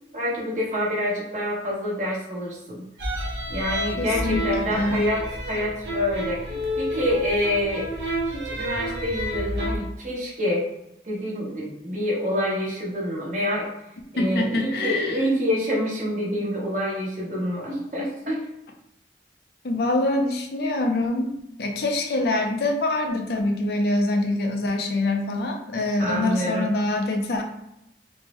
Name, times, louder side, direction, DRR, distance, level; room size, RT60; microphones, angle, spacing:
voice 1, 0.1-2.8 3.5-6.4 6.8-7.9 8.2-10.7 11.0-13.7 14.1-18.4 26.0-26.7, equal, 45° right, -5 dB, 1.0 m, -27 dB
sound 1, 3.0-9.8, equal, 75° right, 0.7 m, -30 dB
voice 2, 4.0-4.4 4.7-5.0 14.2-15.5 19.6-21.3 21.6-27.4, left 2 dB, 60° left, 3 dB, 0.4 m, -25 dB
3.5 x 2.1 x 2.9 m, 0.83 s
head